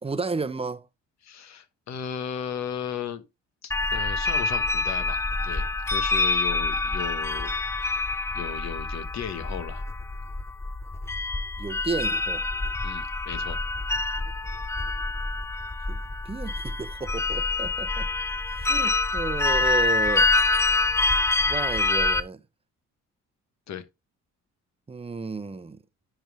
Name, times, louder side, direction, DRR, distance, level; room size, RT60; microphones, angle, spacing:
voice 1, 0.0-0.9 11.6-12.5 15.9-18.1 18.5-20.3 21.5-22.4 24.9-25.8, right 4 dB, 20° right, 0.8 m, -32 dB
voice 2, 1.2-3.2 3.6-7.5 7.8-8.0 8.3-9.9 12.8-13.6 23.7-23.8, left 8 dB, 65° left, 1.2 m, -35 dB
sound 1, 3.7-22.2, left 3 dB, 10° left, 0.5 m, -26 dB
10.0 x 3.5 x 3.5 m
cardioid pair, 90°, 30 cm